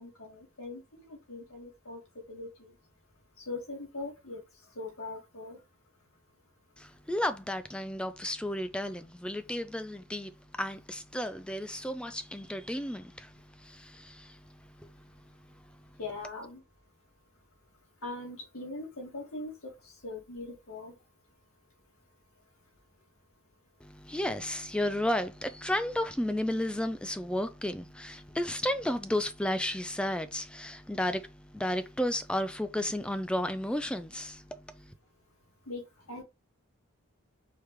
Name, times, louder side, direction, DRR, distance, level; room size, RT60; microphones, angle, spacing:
voice 1, 0.0-2.0 2.3-2.5 3.5-4.4 4.8-5.6 16.0-16.6 18.0-19.5 20.0-20.9 35.7-35.8 36.1-36.2, left 2 dB, 75° left, 2.1 m, -41 dB
voice 2, 6.8-10.3 10.6-13.3 13.6-14.4 14.8-14.9 23.8-34.6, left 1 dB, 5° left, 0.3 m, -33 dB
4.8 x 3.3 x 3.2 m
head